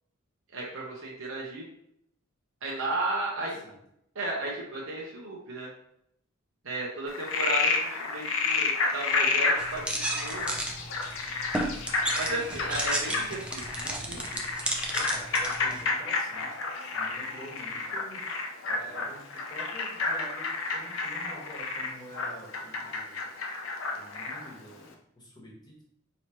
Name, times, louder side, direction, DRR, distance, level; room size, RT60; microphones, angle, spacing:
voice 1, 0.5-1.7 2.6-3.6 4.1-5.7 6.6-10.4 12.2-14.4, right 2 dB, 70° right, -3 dB, 0.8 m, -34 dB
voice 2, 3.3-3.8 12.9-13.0 14.9-16.6 16.9-18.2 18.7-23.2 23.9-25.8, equal, 20° left, -4 dB, 1.2 m, -47 dB
Frog, 7.1-24.5, left 4 dB, 75° left, 0.6 m, -30 dB
sound 1, 9.6-15.8, right 1 dB, 5° right, 0.5 m, -33 dB
4.8 x 3.0 x 2.9 m, 0.74 s
head